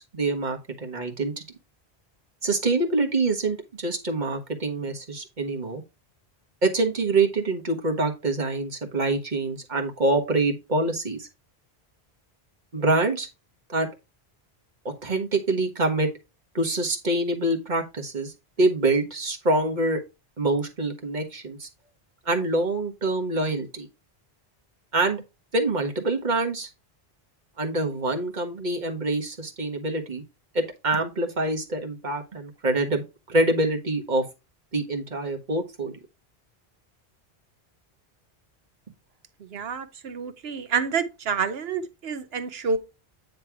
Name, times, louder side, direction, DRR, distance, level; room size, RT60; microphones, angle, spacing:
voice 1, 0.0-1.4 2.4-5.8 6.6-11.3 12.7-13.3 13.7-13.9 14.8-16.1 16.5-20.0 20.4-21.7 22.2-23.9 24.9-25.2 25.5-26.7 27.6-30.2 30.5-34.2 34.7-36.0, right 2 dB, 45° right, 1.6 m, -25 dB
voice 2, 39.5-42.8, right 5 dB, 70° right, 1.1 m, -28 dB
9.4 x 3.3 x 4.6 m
omnidirectional pair, 1.1 m